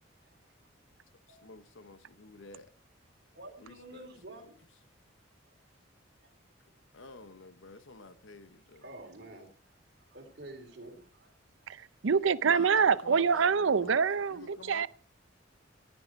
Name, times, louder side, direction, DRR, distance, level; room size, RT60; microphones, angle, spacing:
voice 1, 1.1-2.7 3.6-4.5 6.9-8.8 12.5-14.0 14.3-14.9, left 3 dB, 80° left, 11 dB, 1.0 m, -50 dB
voice 2, 3.4-4.5 8.8-9.8 10.1-11.3, right 1 dB, 55° right, 2 dB, 3.5 m, -49 dB
voice 3, 11.7-14.9, right 6 dB, 75° right, 16 dB, 0.6 m, -26 dB
15.5 x 10.0 x 4.6 m, 0.43 s
head